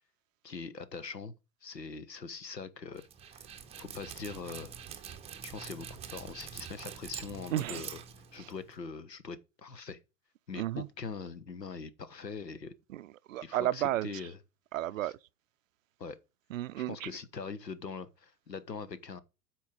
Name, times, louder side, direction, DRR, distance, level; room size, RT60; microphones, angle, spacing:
voice 1, 0.4-1.3 1.6-3.5 3.8-4.7 5.4-8.0 8.3-10.0 10.5-12.7 13.4-14.4 15.0-15.1 16.0-16.2 16.9-19.2, left 5 dB, 90° left, 0.8 m, -42 dB
Dog, 3.0-8.8, right 8 dB, 15° right, 0.7 m, -45 dB
voice 2, 7.5-7.8 8.4-8.5 10.6-10.9 12.9-14.1 14.7-15.2 16.5-17.1, right 13 dB, 55° right, 0.5 m, -33 dB
8.2 x 4.5 x 5.3 m
figure-of-eight pair, 95°, 48 cm